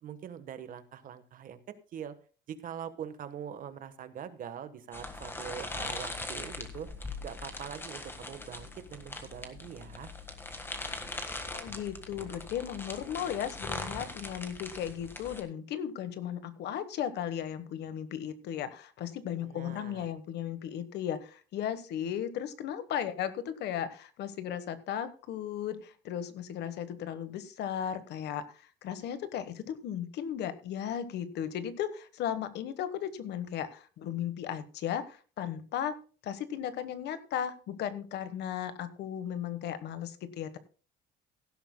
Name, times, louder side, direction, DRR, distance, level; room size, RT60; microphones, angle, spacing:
voice 1, 0.0-1.6 1.9-2.1 2.5-6.9 7.2-10.1 19.4-20.1, right 8 dB, 50° right, 12 dB, 1.2 m, -43 dB
sound 1, 4.9-15.4, left 2 dB, 10° left, 1.5 m, -41 dB
voice 2, 11.4-36.0 36.2-40.6, left 9 dB, 65° left, 12 dB, 1.2 m, -36 dB
17.0 x 11.5 x 2.2 m, 0.38 s
cardioid pair, 145°, 18 cm